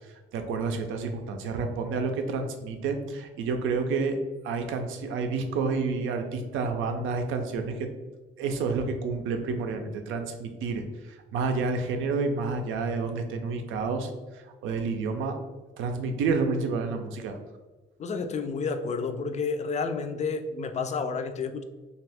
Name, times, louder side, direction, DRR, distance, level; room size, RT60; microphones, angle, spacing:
voice 1, 0.3-4.2 4.4-7.8 8.4-14.1 14.6-15.4 15.8-17.4, right 4 dB, 85° right, 5 dB, 0.5 m, -29 dB
voice 2, 18.0-21.6, left 4 dB, 35° left, 8 dB, 0.4 m, -30 dB
2.6 x 2.4 x 3.3 m, 1.2 s
cardioid pair, 90°, 20 cm